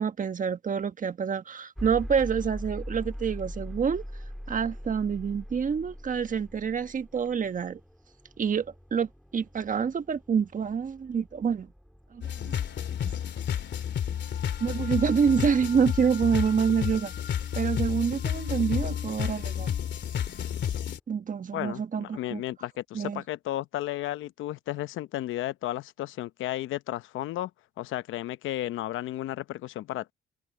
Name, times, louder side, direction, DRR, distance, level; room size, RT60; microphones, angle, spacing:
voice 1, 0.0-4.0 4.5-7.8 8.4-11.7 12.1-12.6 13.0-13.1 14.6-17.1 17.5-19.7 21.1-22.4 22.9-23.2, right 6 dB, 40° right, 1.3 m, -27 dB
sound 1, 1.8-17.7, equal, ahead, 4.5 m, -43 dB
sound 2, 12.2-21.0, left 9 dB, 65° left, 2.9 m, -31 dB
voice 2, 21.5-27.5 27.8-30.1, left 14 dB, 85° left, 0.8 m, -33 dB
cardioid pair, 90°, 20 cm